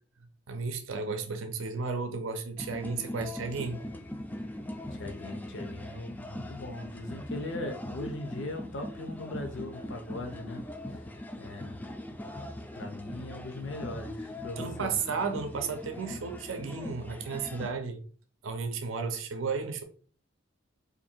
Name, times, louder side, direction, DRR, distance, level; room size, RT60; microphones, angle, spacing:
voice 1, 0.5-3.9 14.6-18.0 18.4-19.8, right 4 dB, 85° right, 0.5 m, -33 dB
sound 1, 2.6-17.7, left 1 dB, 10° left, 0.3 m, -41 dB
voice 2, 4.9-11.8 12.7-15.0, left 2 dB, 65° left, 0.6 m, -40 dB
2.7 x 2.6 x 4.3 m
head